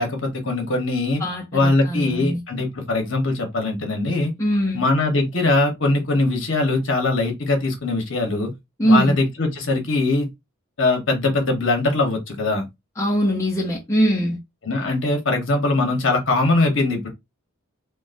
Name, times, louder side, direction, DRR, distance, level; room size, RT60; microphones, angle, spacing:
voice 1, 0.0-1.2 1.5-4.3 4.7-8.5 8.8-10.3 10.8-12.6 14.6-17.1, left 2 dB, 60° left, 1.0 m, -21 dB
voice 2, 1.2-2.4 4.4-4.8 8.8-9.2 13.0-14.4, equal, 15° left, 0.5 m, -21 dB
3.7 x 2.2 x 2.5 m
head